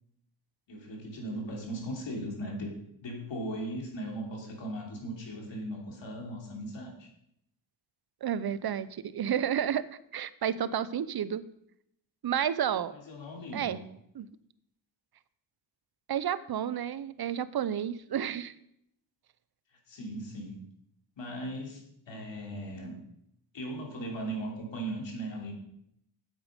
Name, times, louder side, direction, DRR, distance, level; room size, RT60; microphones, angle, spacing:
voice 1, 0.7-2.7 3.0-7.1 12.9-13.8 19.9-20.6 21.2-23.0 23.5-25.5, right 1 dB, 65° left, 0 dB, 3.2 m, -38 dB
voice 2, 8.2-9.8 10.1-11.4 12.2-12.9 13.5-13.8 14.1-14.3 16.1-18.5, right 9 dB, 50° right, 16 dB, 0.8 m, -31 dB
8.8 x 8.1 x 5.2 m, 0.75 s
cardioid pair, 55°, 47 cm